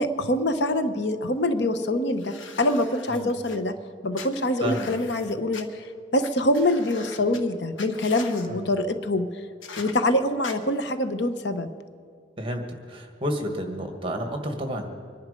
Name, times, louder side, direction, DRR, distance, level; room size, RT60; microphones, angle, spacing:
voice 1, 0.0-3.7 4.0-9.3 9.8-11.7, left 1 dB, 60° left, 10 dB, 0.9 m, -25 dB
sound 1, 2.2-3.6 4.1-5.6 6.2-6.3 6.5-7.4 7.8-8.5 9.6-9.9 10.4-10.5, left 5 dB, 75° left, 1.3 m, -41 dB
voice 2, 4.6-4.9 8.5-8.7 12.4-12.6 12.9-14.9, equal, 25° right, 4 dB, 1.7 m, -30 dB
25.0 x 11.0 x 5.2 m, 2.2 s
head